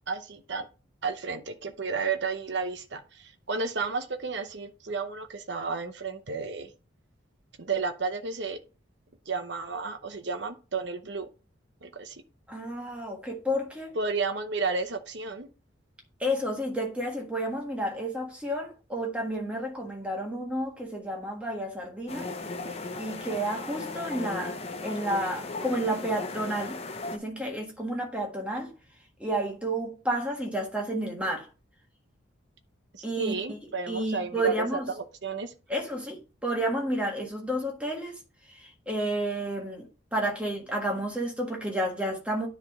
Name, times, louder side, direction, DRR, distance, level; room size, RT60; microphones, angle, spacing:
voice 1, 0.1-0.7 1.0-6.7 7.6-8.6 9.3-11.3 11.8-12.2 13.9-15.5 32.9-34.8 35.2-35.5, right 4 dB, 60° right, 0.8 m, -32 dB
voice 2, 12.5-13.9 16.2-22.3 22.9-24.6 24.8-26.8 27.1-28.7 29.2-31.5 33.0-33.6 33.9-34.9 35.7-38.1 38.5-42.5, right 1 dB, 5° right, 1.5 m, -31 dB
sound 1, 22.1-27.2, left 3 dB, 30° left, 0.6 m, -36 dB
10.0 x 3.5 x 4.8 m
head